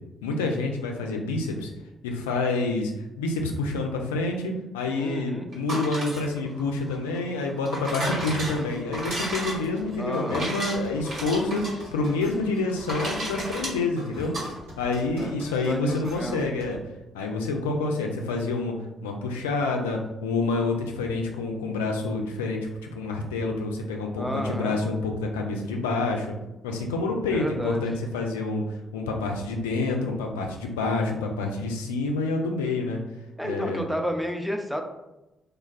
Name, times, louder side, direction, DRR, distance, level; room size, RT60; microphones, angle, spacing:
voice 1, 0.2-1.7 2.0-2.9 3.2-14.3 14.8-16.8 17.1-18.7 19.0-26.4 26.6-28.6 28.9-33.0 33.4-33.9, left 3 dB, 75° left, 2 dB, 0.3 m, -28 dB
voice 2, 4.9-5.5 10.0-10.5 15.2-16.4 24.2-24.8 27.3-27.8 33.4-34.8, equal, ahead, 3 dB, 0.4 m, -31 dB
sound 1, 5.5-14.5, right 1 dB, 50° right, 1.2 m, -34 dB
sound 2, 8.2-16.7, equal, 80° right, 1.0 m, -43 dB
3.2 x 2.2 x 2.3 m, 0.97 s
figure-of-eight pair, 40°, 0 cm